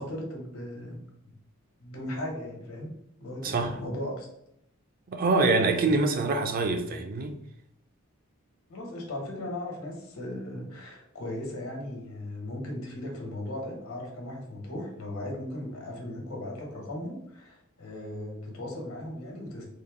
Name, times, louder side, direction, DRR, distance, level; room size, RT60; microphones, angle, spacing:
voice 1, 0.0-1.3 1.8-4.3 8.7-19.6, left 1 dB, 85° left, 1.1 m, -37 dB
voice 2, 3.4-3.8 5.1-7.4, right 3 dB, 45° right, 0.4 m, -25 dB
3.8 x 2.0 x 3.5 m
head